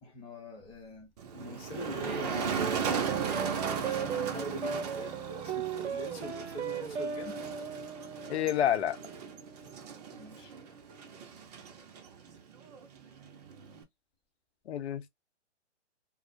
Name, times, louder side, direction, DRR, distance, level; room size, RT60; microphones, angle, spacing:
voice 1, 0.0-2.7 4.0-7.4 10.1-10.5, left 1 dB, 15° left, 0.8 m, -43 dB
Motor vehicle (road), 1.2-13.8, right 6 dB, 35° right, 0.5 m, -37 dB
sound 1, 2.6-11.2, right 6 dB, 75° right, 0.8 m, -38 dB
voice 2, 8.3-9.0 14.7-15.1, left 10 dB, 65° left, 0.6 m, -28 dB
2.4 x 2.1 x 2.5 m
hypercardioid pair, 135°, 35 cm